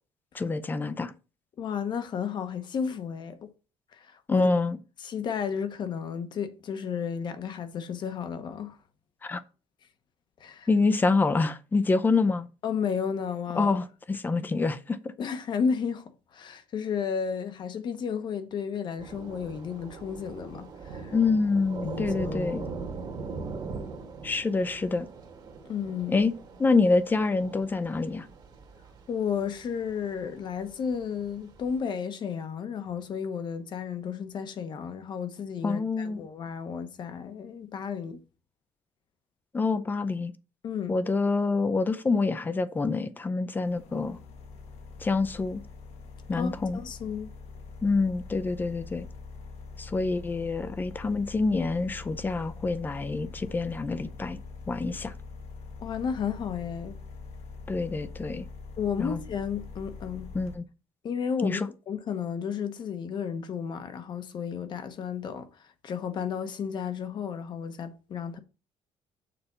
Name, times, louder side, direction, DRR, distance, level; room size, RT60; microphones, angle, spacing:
voice 1, 0.3-1.1 4.3-4.8 9.2-9.4 10.7-12.5 13.5-15.1 21.1-22.6 24.2-25.1 26.1-26.3 26.6-28.3 35.6-36.2 39.5-40.3 40.9-44.2 45.0-45.6 46.3-46.8 47.8-49.1 49.8-54.4 54.7-55.1 57.7-58.5 59.0-59.2 60.3-60.7 61.4-61.7, left 3 dB, 15° left, 0.5 m, -26 dB
voice 2, 1.6-3.5 3.9-4.5 5.0-8.8 10.4-10.7 12.6-13.8 15.2-16.0 16.3-21.1 21.8-22.7 25.6-26.2 29.1-38.2 40.6-41.0 46.3-47.3 55.8-57.0 58.8-60.3 61.0-61.6 61.9-68.4, left 7 dB, 45° left, 0.9 m, -33 dB
Thunder / Rain, 19.0-31.8, right 4 dB, 40° right, 1.5 m, -41 dB
sound 1, 43.6-60.6, left 4 dB, 80° left, 1.4 m, -44 dB
6.8 x 4.2 x 5.5 m
cardioid pair, 155°, 11 cm